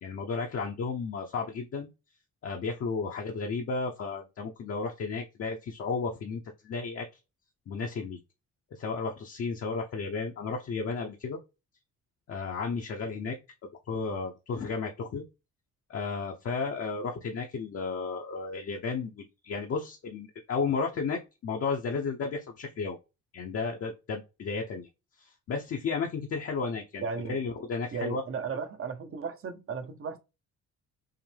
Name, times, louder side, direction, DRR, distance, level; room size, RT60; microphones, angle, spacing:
voice 1, 0.0-1.9 2.4-7.1 7.7-8.2 8.7-11.4 12.3-13.4 13.9-15.2 15.9-23.0 23.3-24.9 25.2-28.2, left 4 dB, 50° left, 0.8 m, -33 dB
voice 2, 27.0-27.4 27.9-30.2, right 5 dB, 45° right, 0.8 m, -35 dB
5.7 x 2.1 x 3.4 m
cardioid pair, 90°, 30 cm